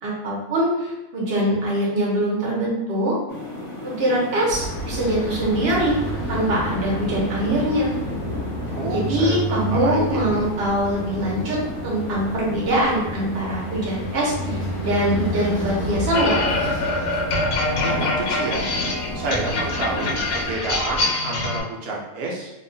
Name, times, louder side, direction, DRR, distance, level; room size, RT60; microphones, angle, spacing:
voice 1, 0.0-3.1 3.8-6.0 6.3-7.9 8.9-16.4, right 1 dB, 50° right, -5 dB, 1.0 m, -23 dB
sound 1, 3.3-20.5, left 1 dB, 15° left, 0.8 m, -34 dB
sound 2, 4.5-21.0, left 1 dB, 90° left, 1.2 m, -32 dB
voice 2, 8.7-10.5 17.4-17.5 17.8-18.7 19.1-22.5, right 2 dB, 80° right, -2 dB, 1.1 m, -29 dB
sound 3, 16.1-21.6, left 2 dB, 65° left, 0.9 m, -25 dB
2.8 x 2.3 x 2.6 m, 1.0 s
omnidirectional pair, 1.6 m